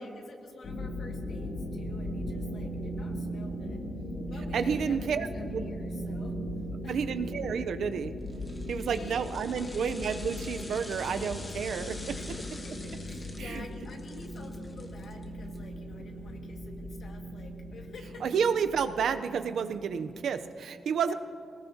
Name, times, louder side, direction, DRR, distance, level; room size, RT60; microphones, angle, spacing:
voice 1, 0.0-3.8 4.3-6.4 6.8-7.1 8.9-9.3 9.6-9.8 12.1-18.6 21.1-21.2, left 3 dB, 65° left, 2 dB, 1.9 m, -50 dB
sound 1, 0.6-20.5, equal, 85° left, 3.1 m, -38 dB
voice 2, 4.5-5.7 6.9-8.1 8.7-12.2 13.4-13.6 18.2-21.1, right 6 dB, 85° right, 9 dB, 0.6 m, -30 dB
sound 2, 8.3-15.6 15.9-16.0, left 2 dB, 25° left, 1.4 m, -47 dB
22.5 x 19.0 x 2.9 m, 2.3 s
wide cardioid pair, 140°, 0 cm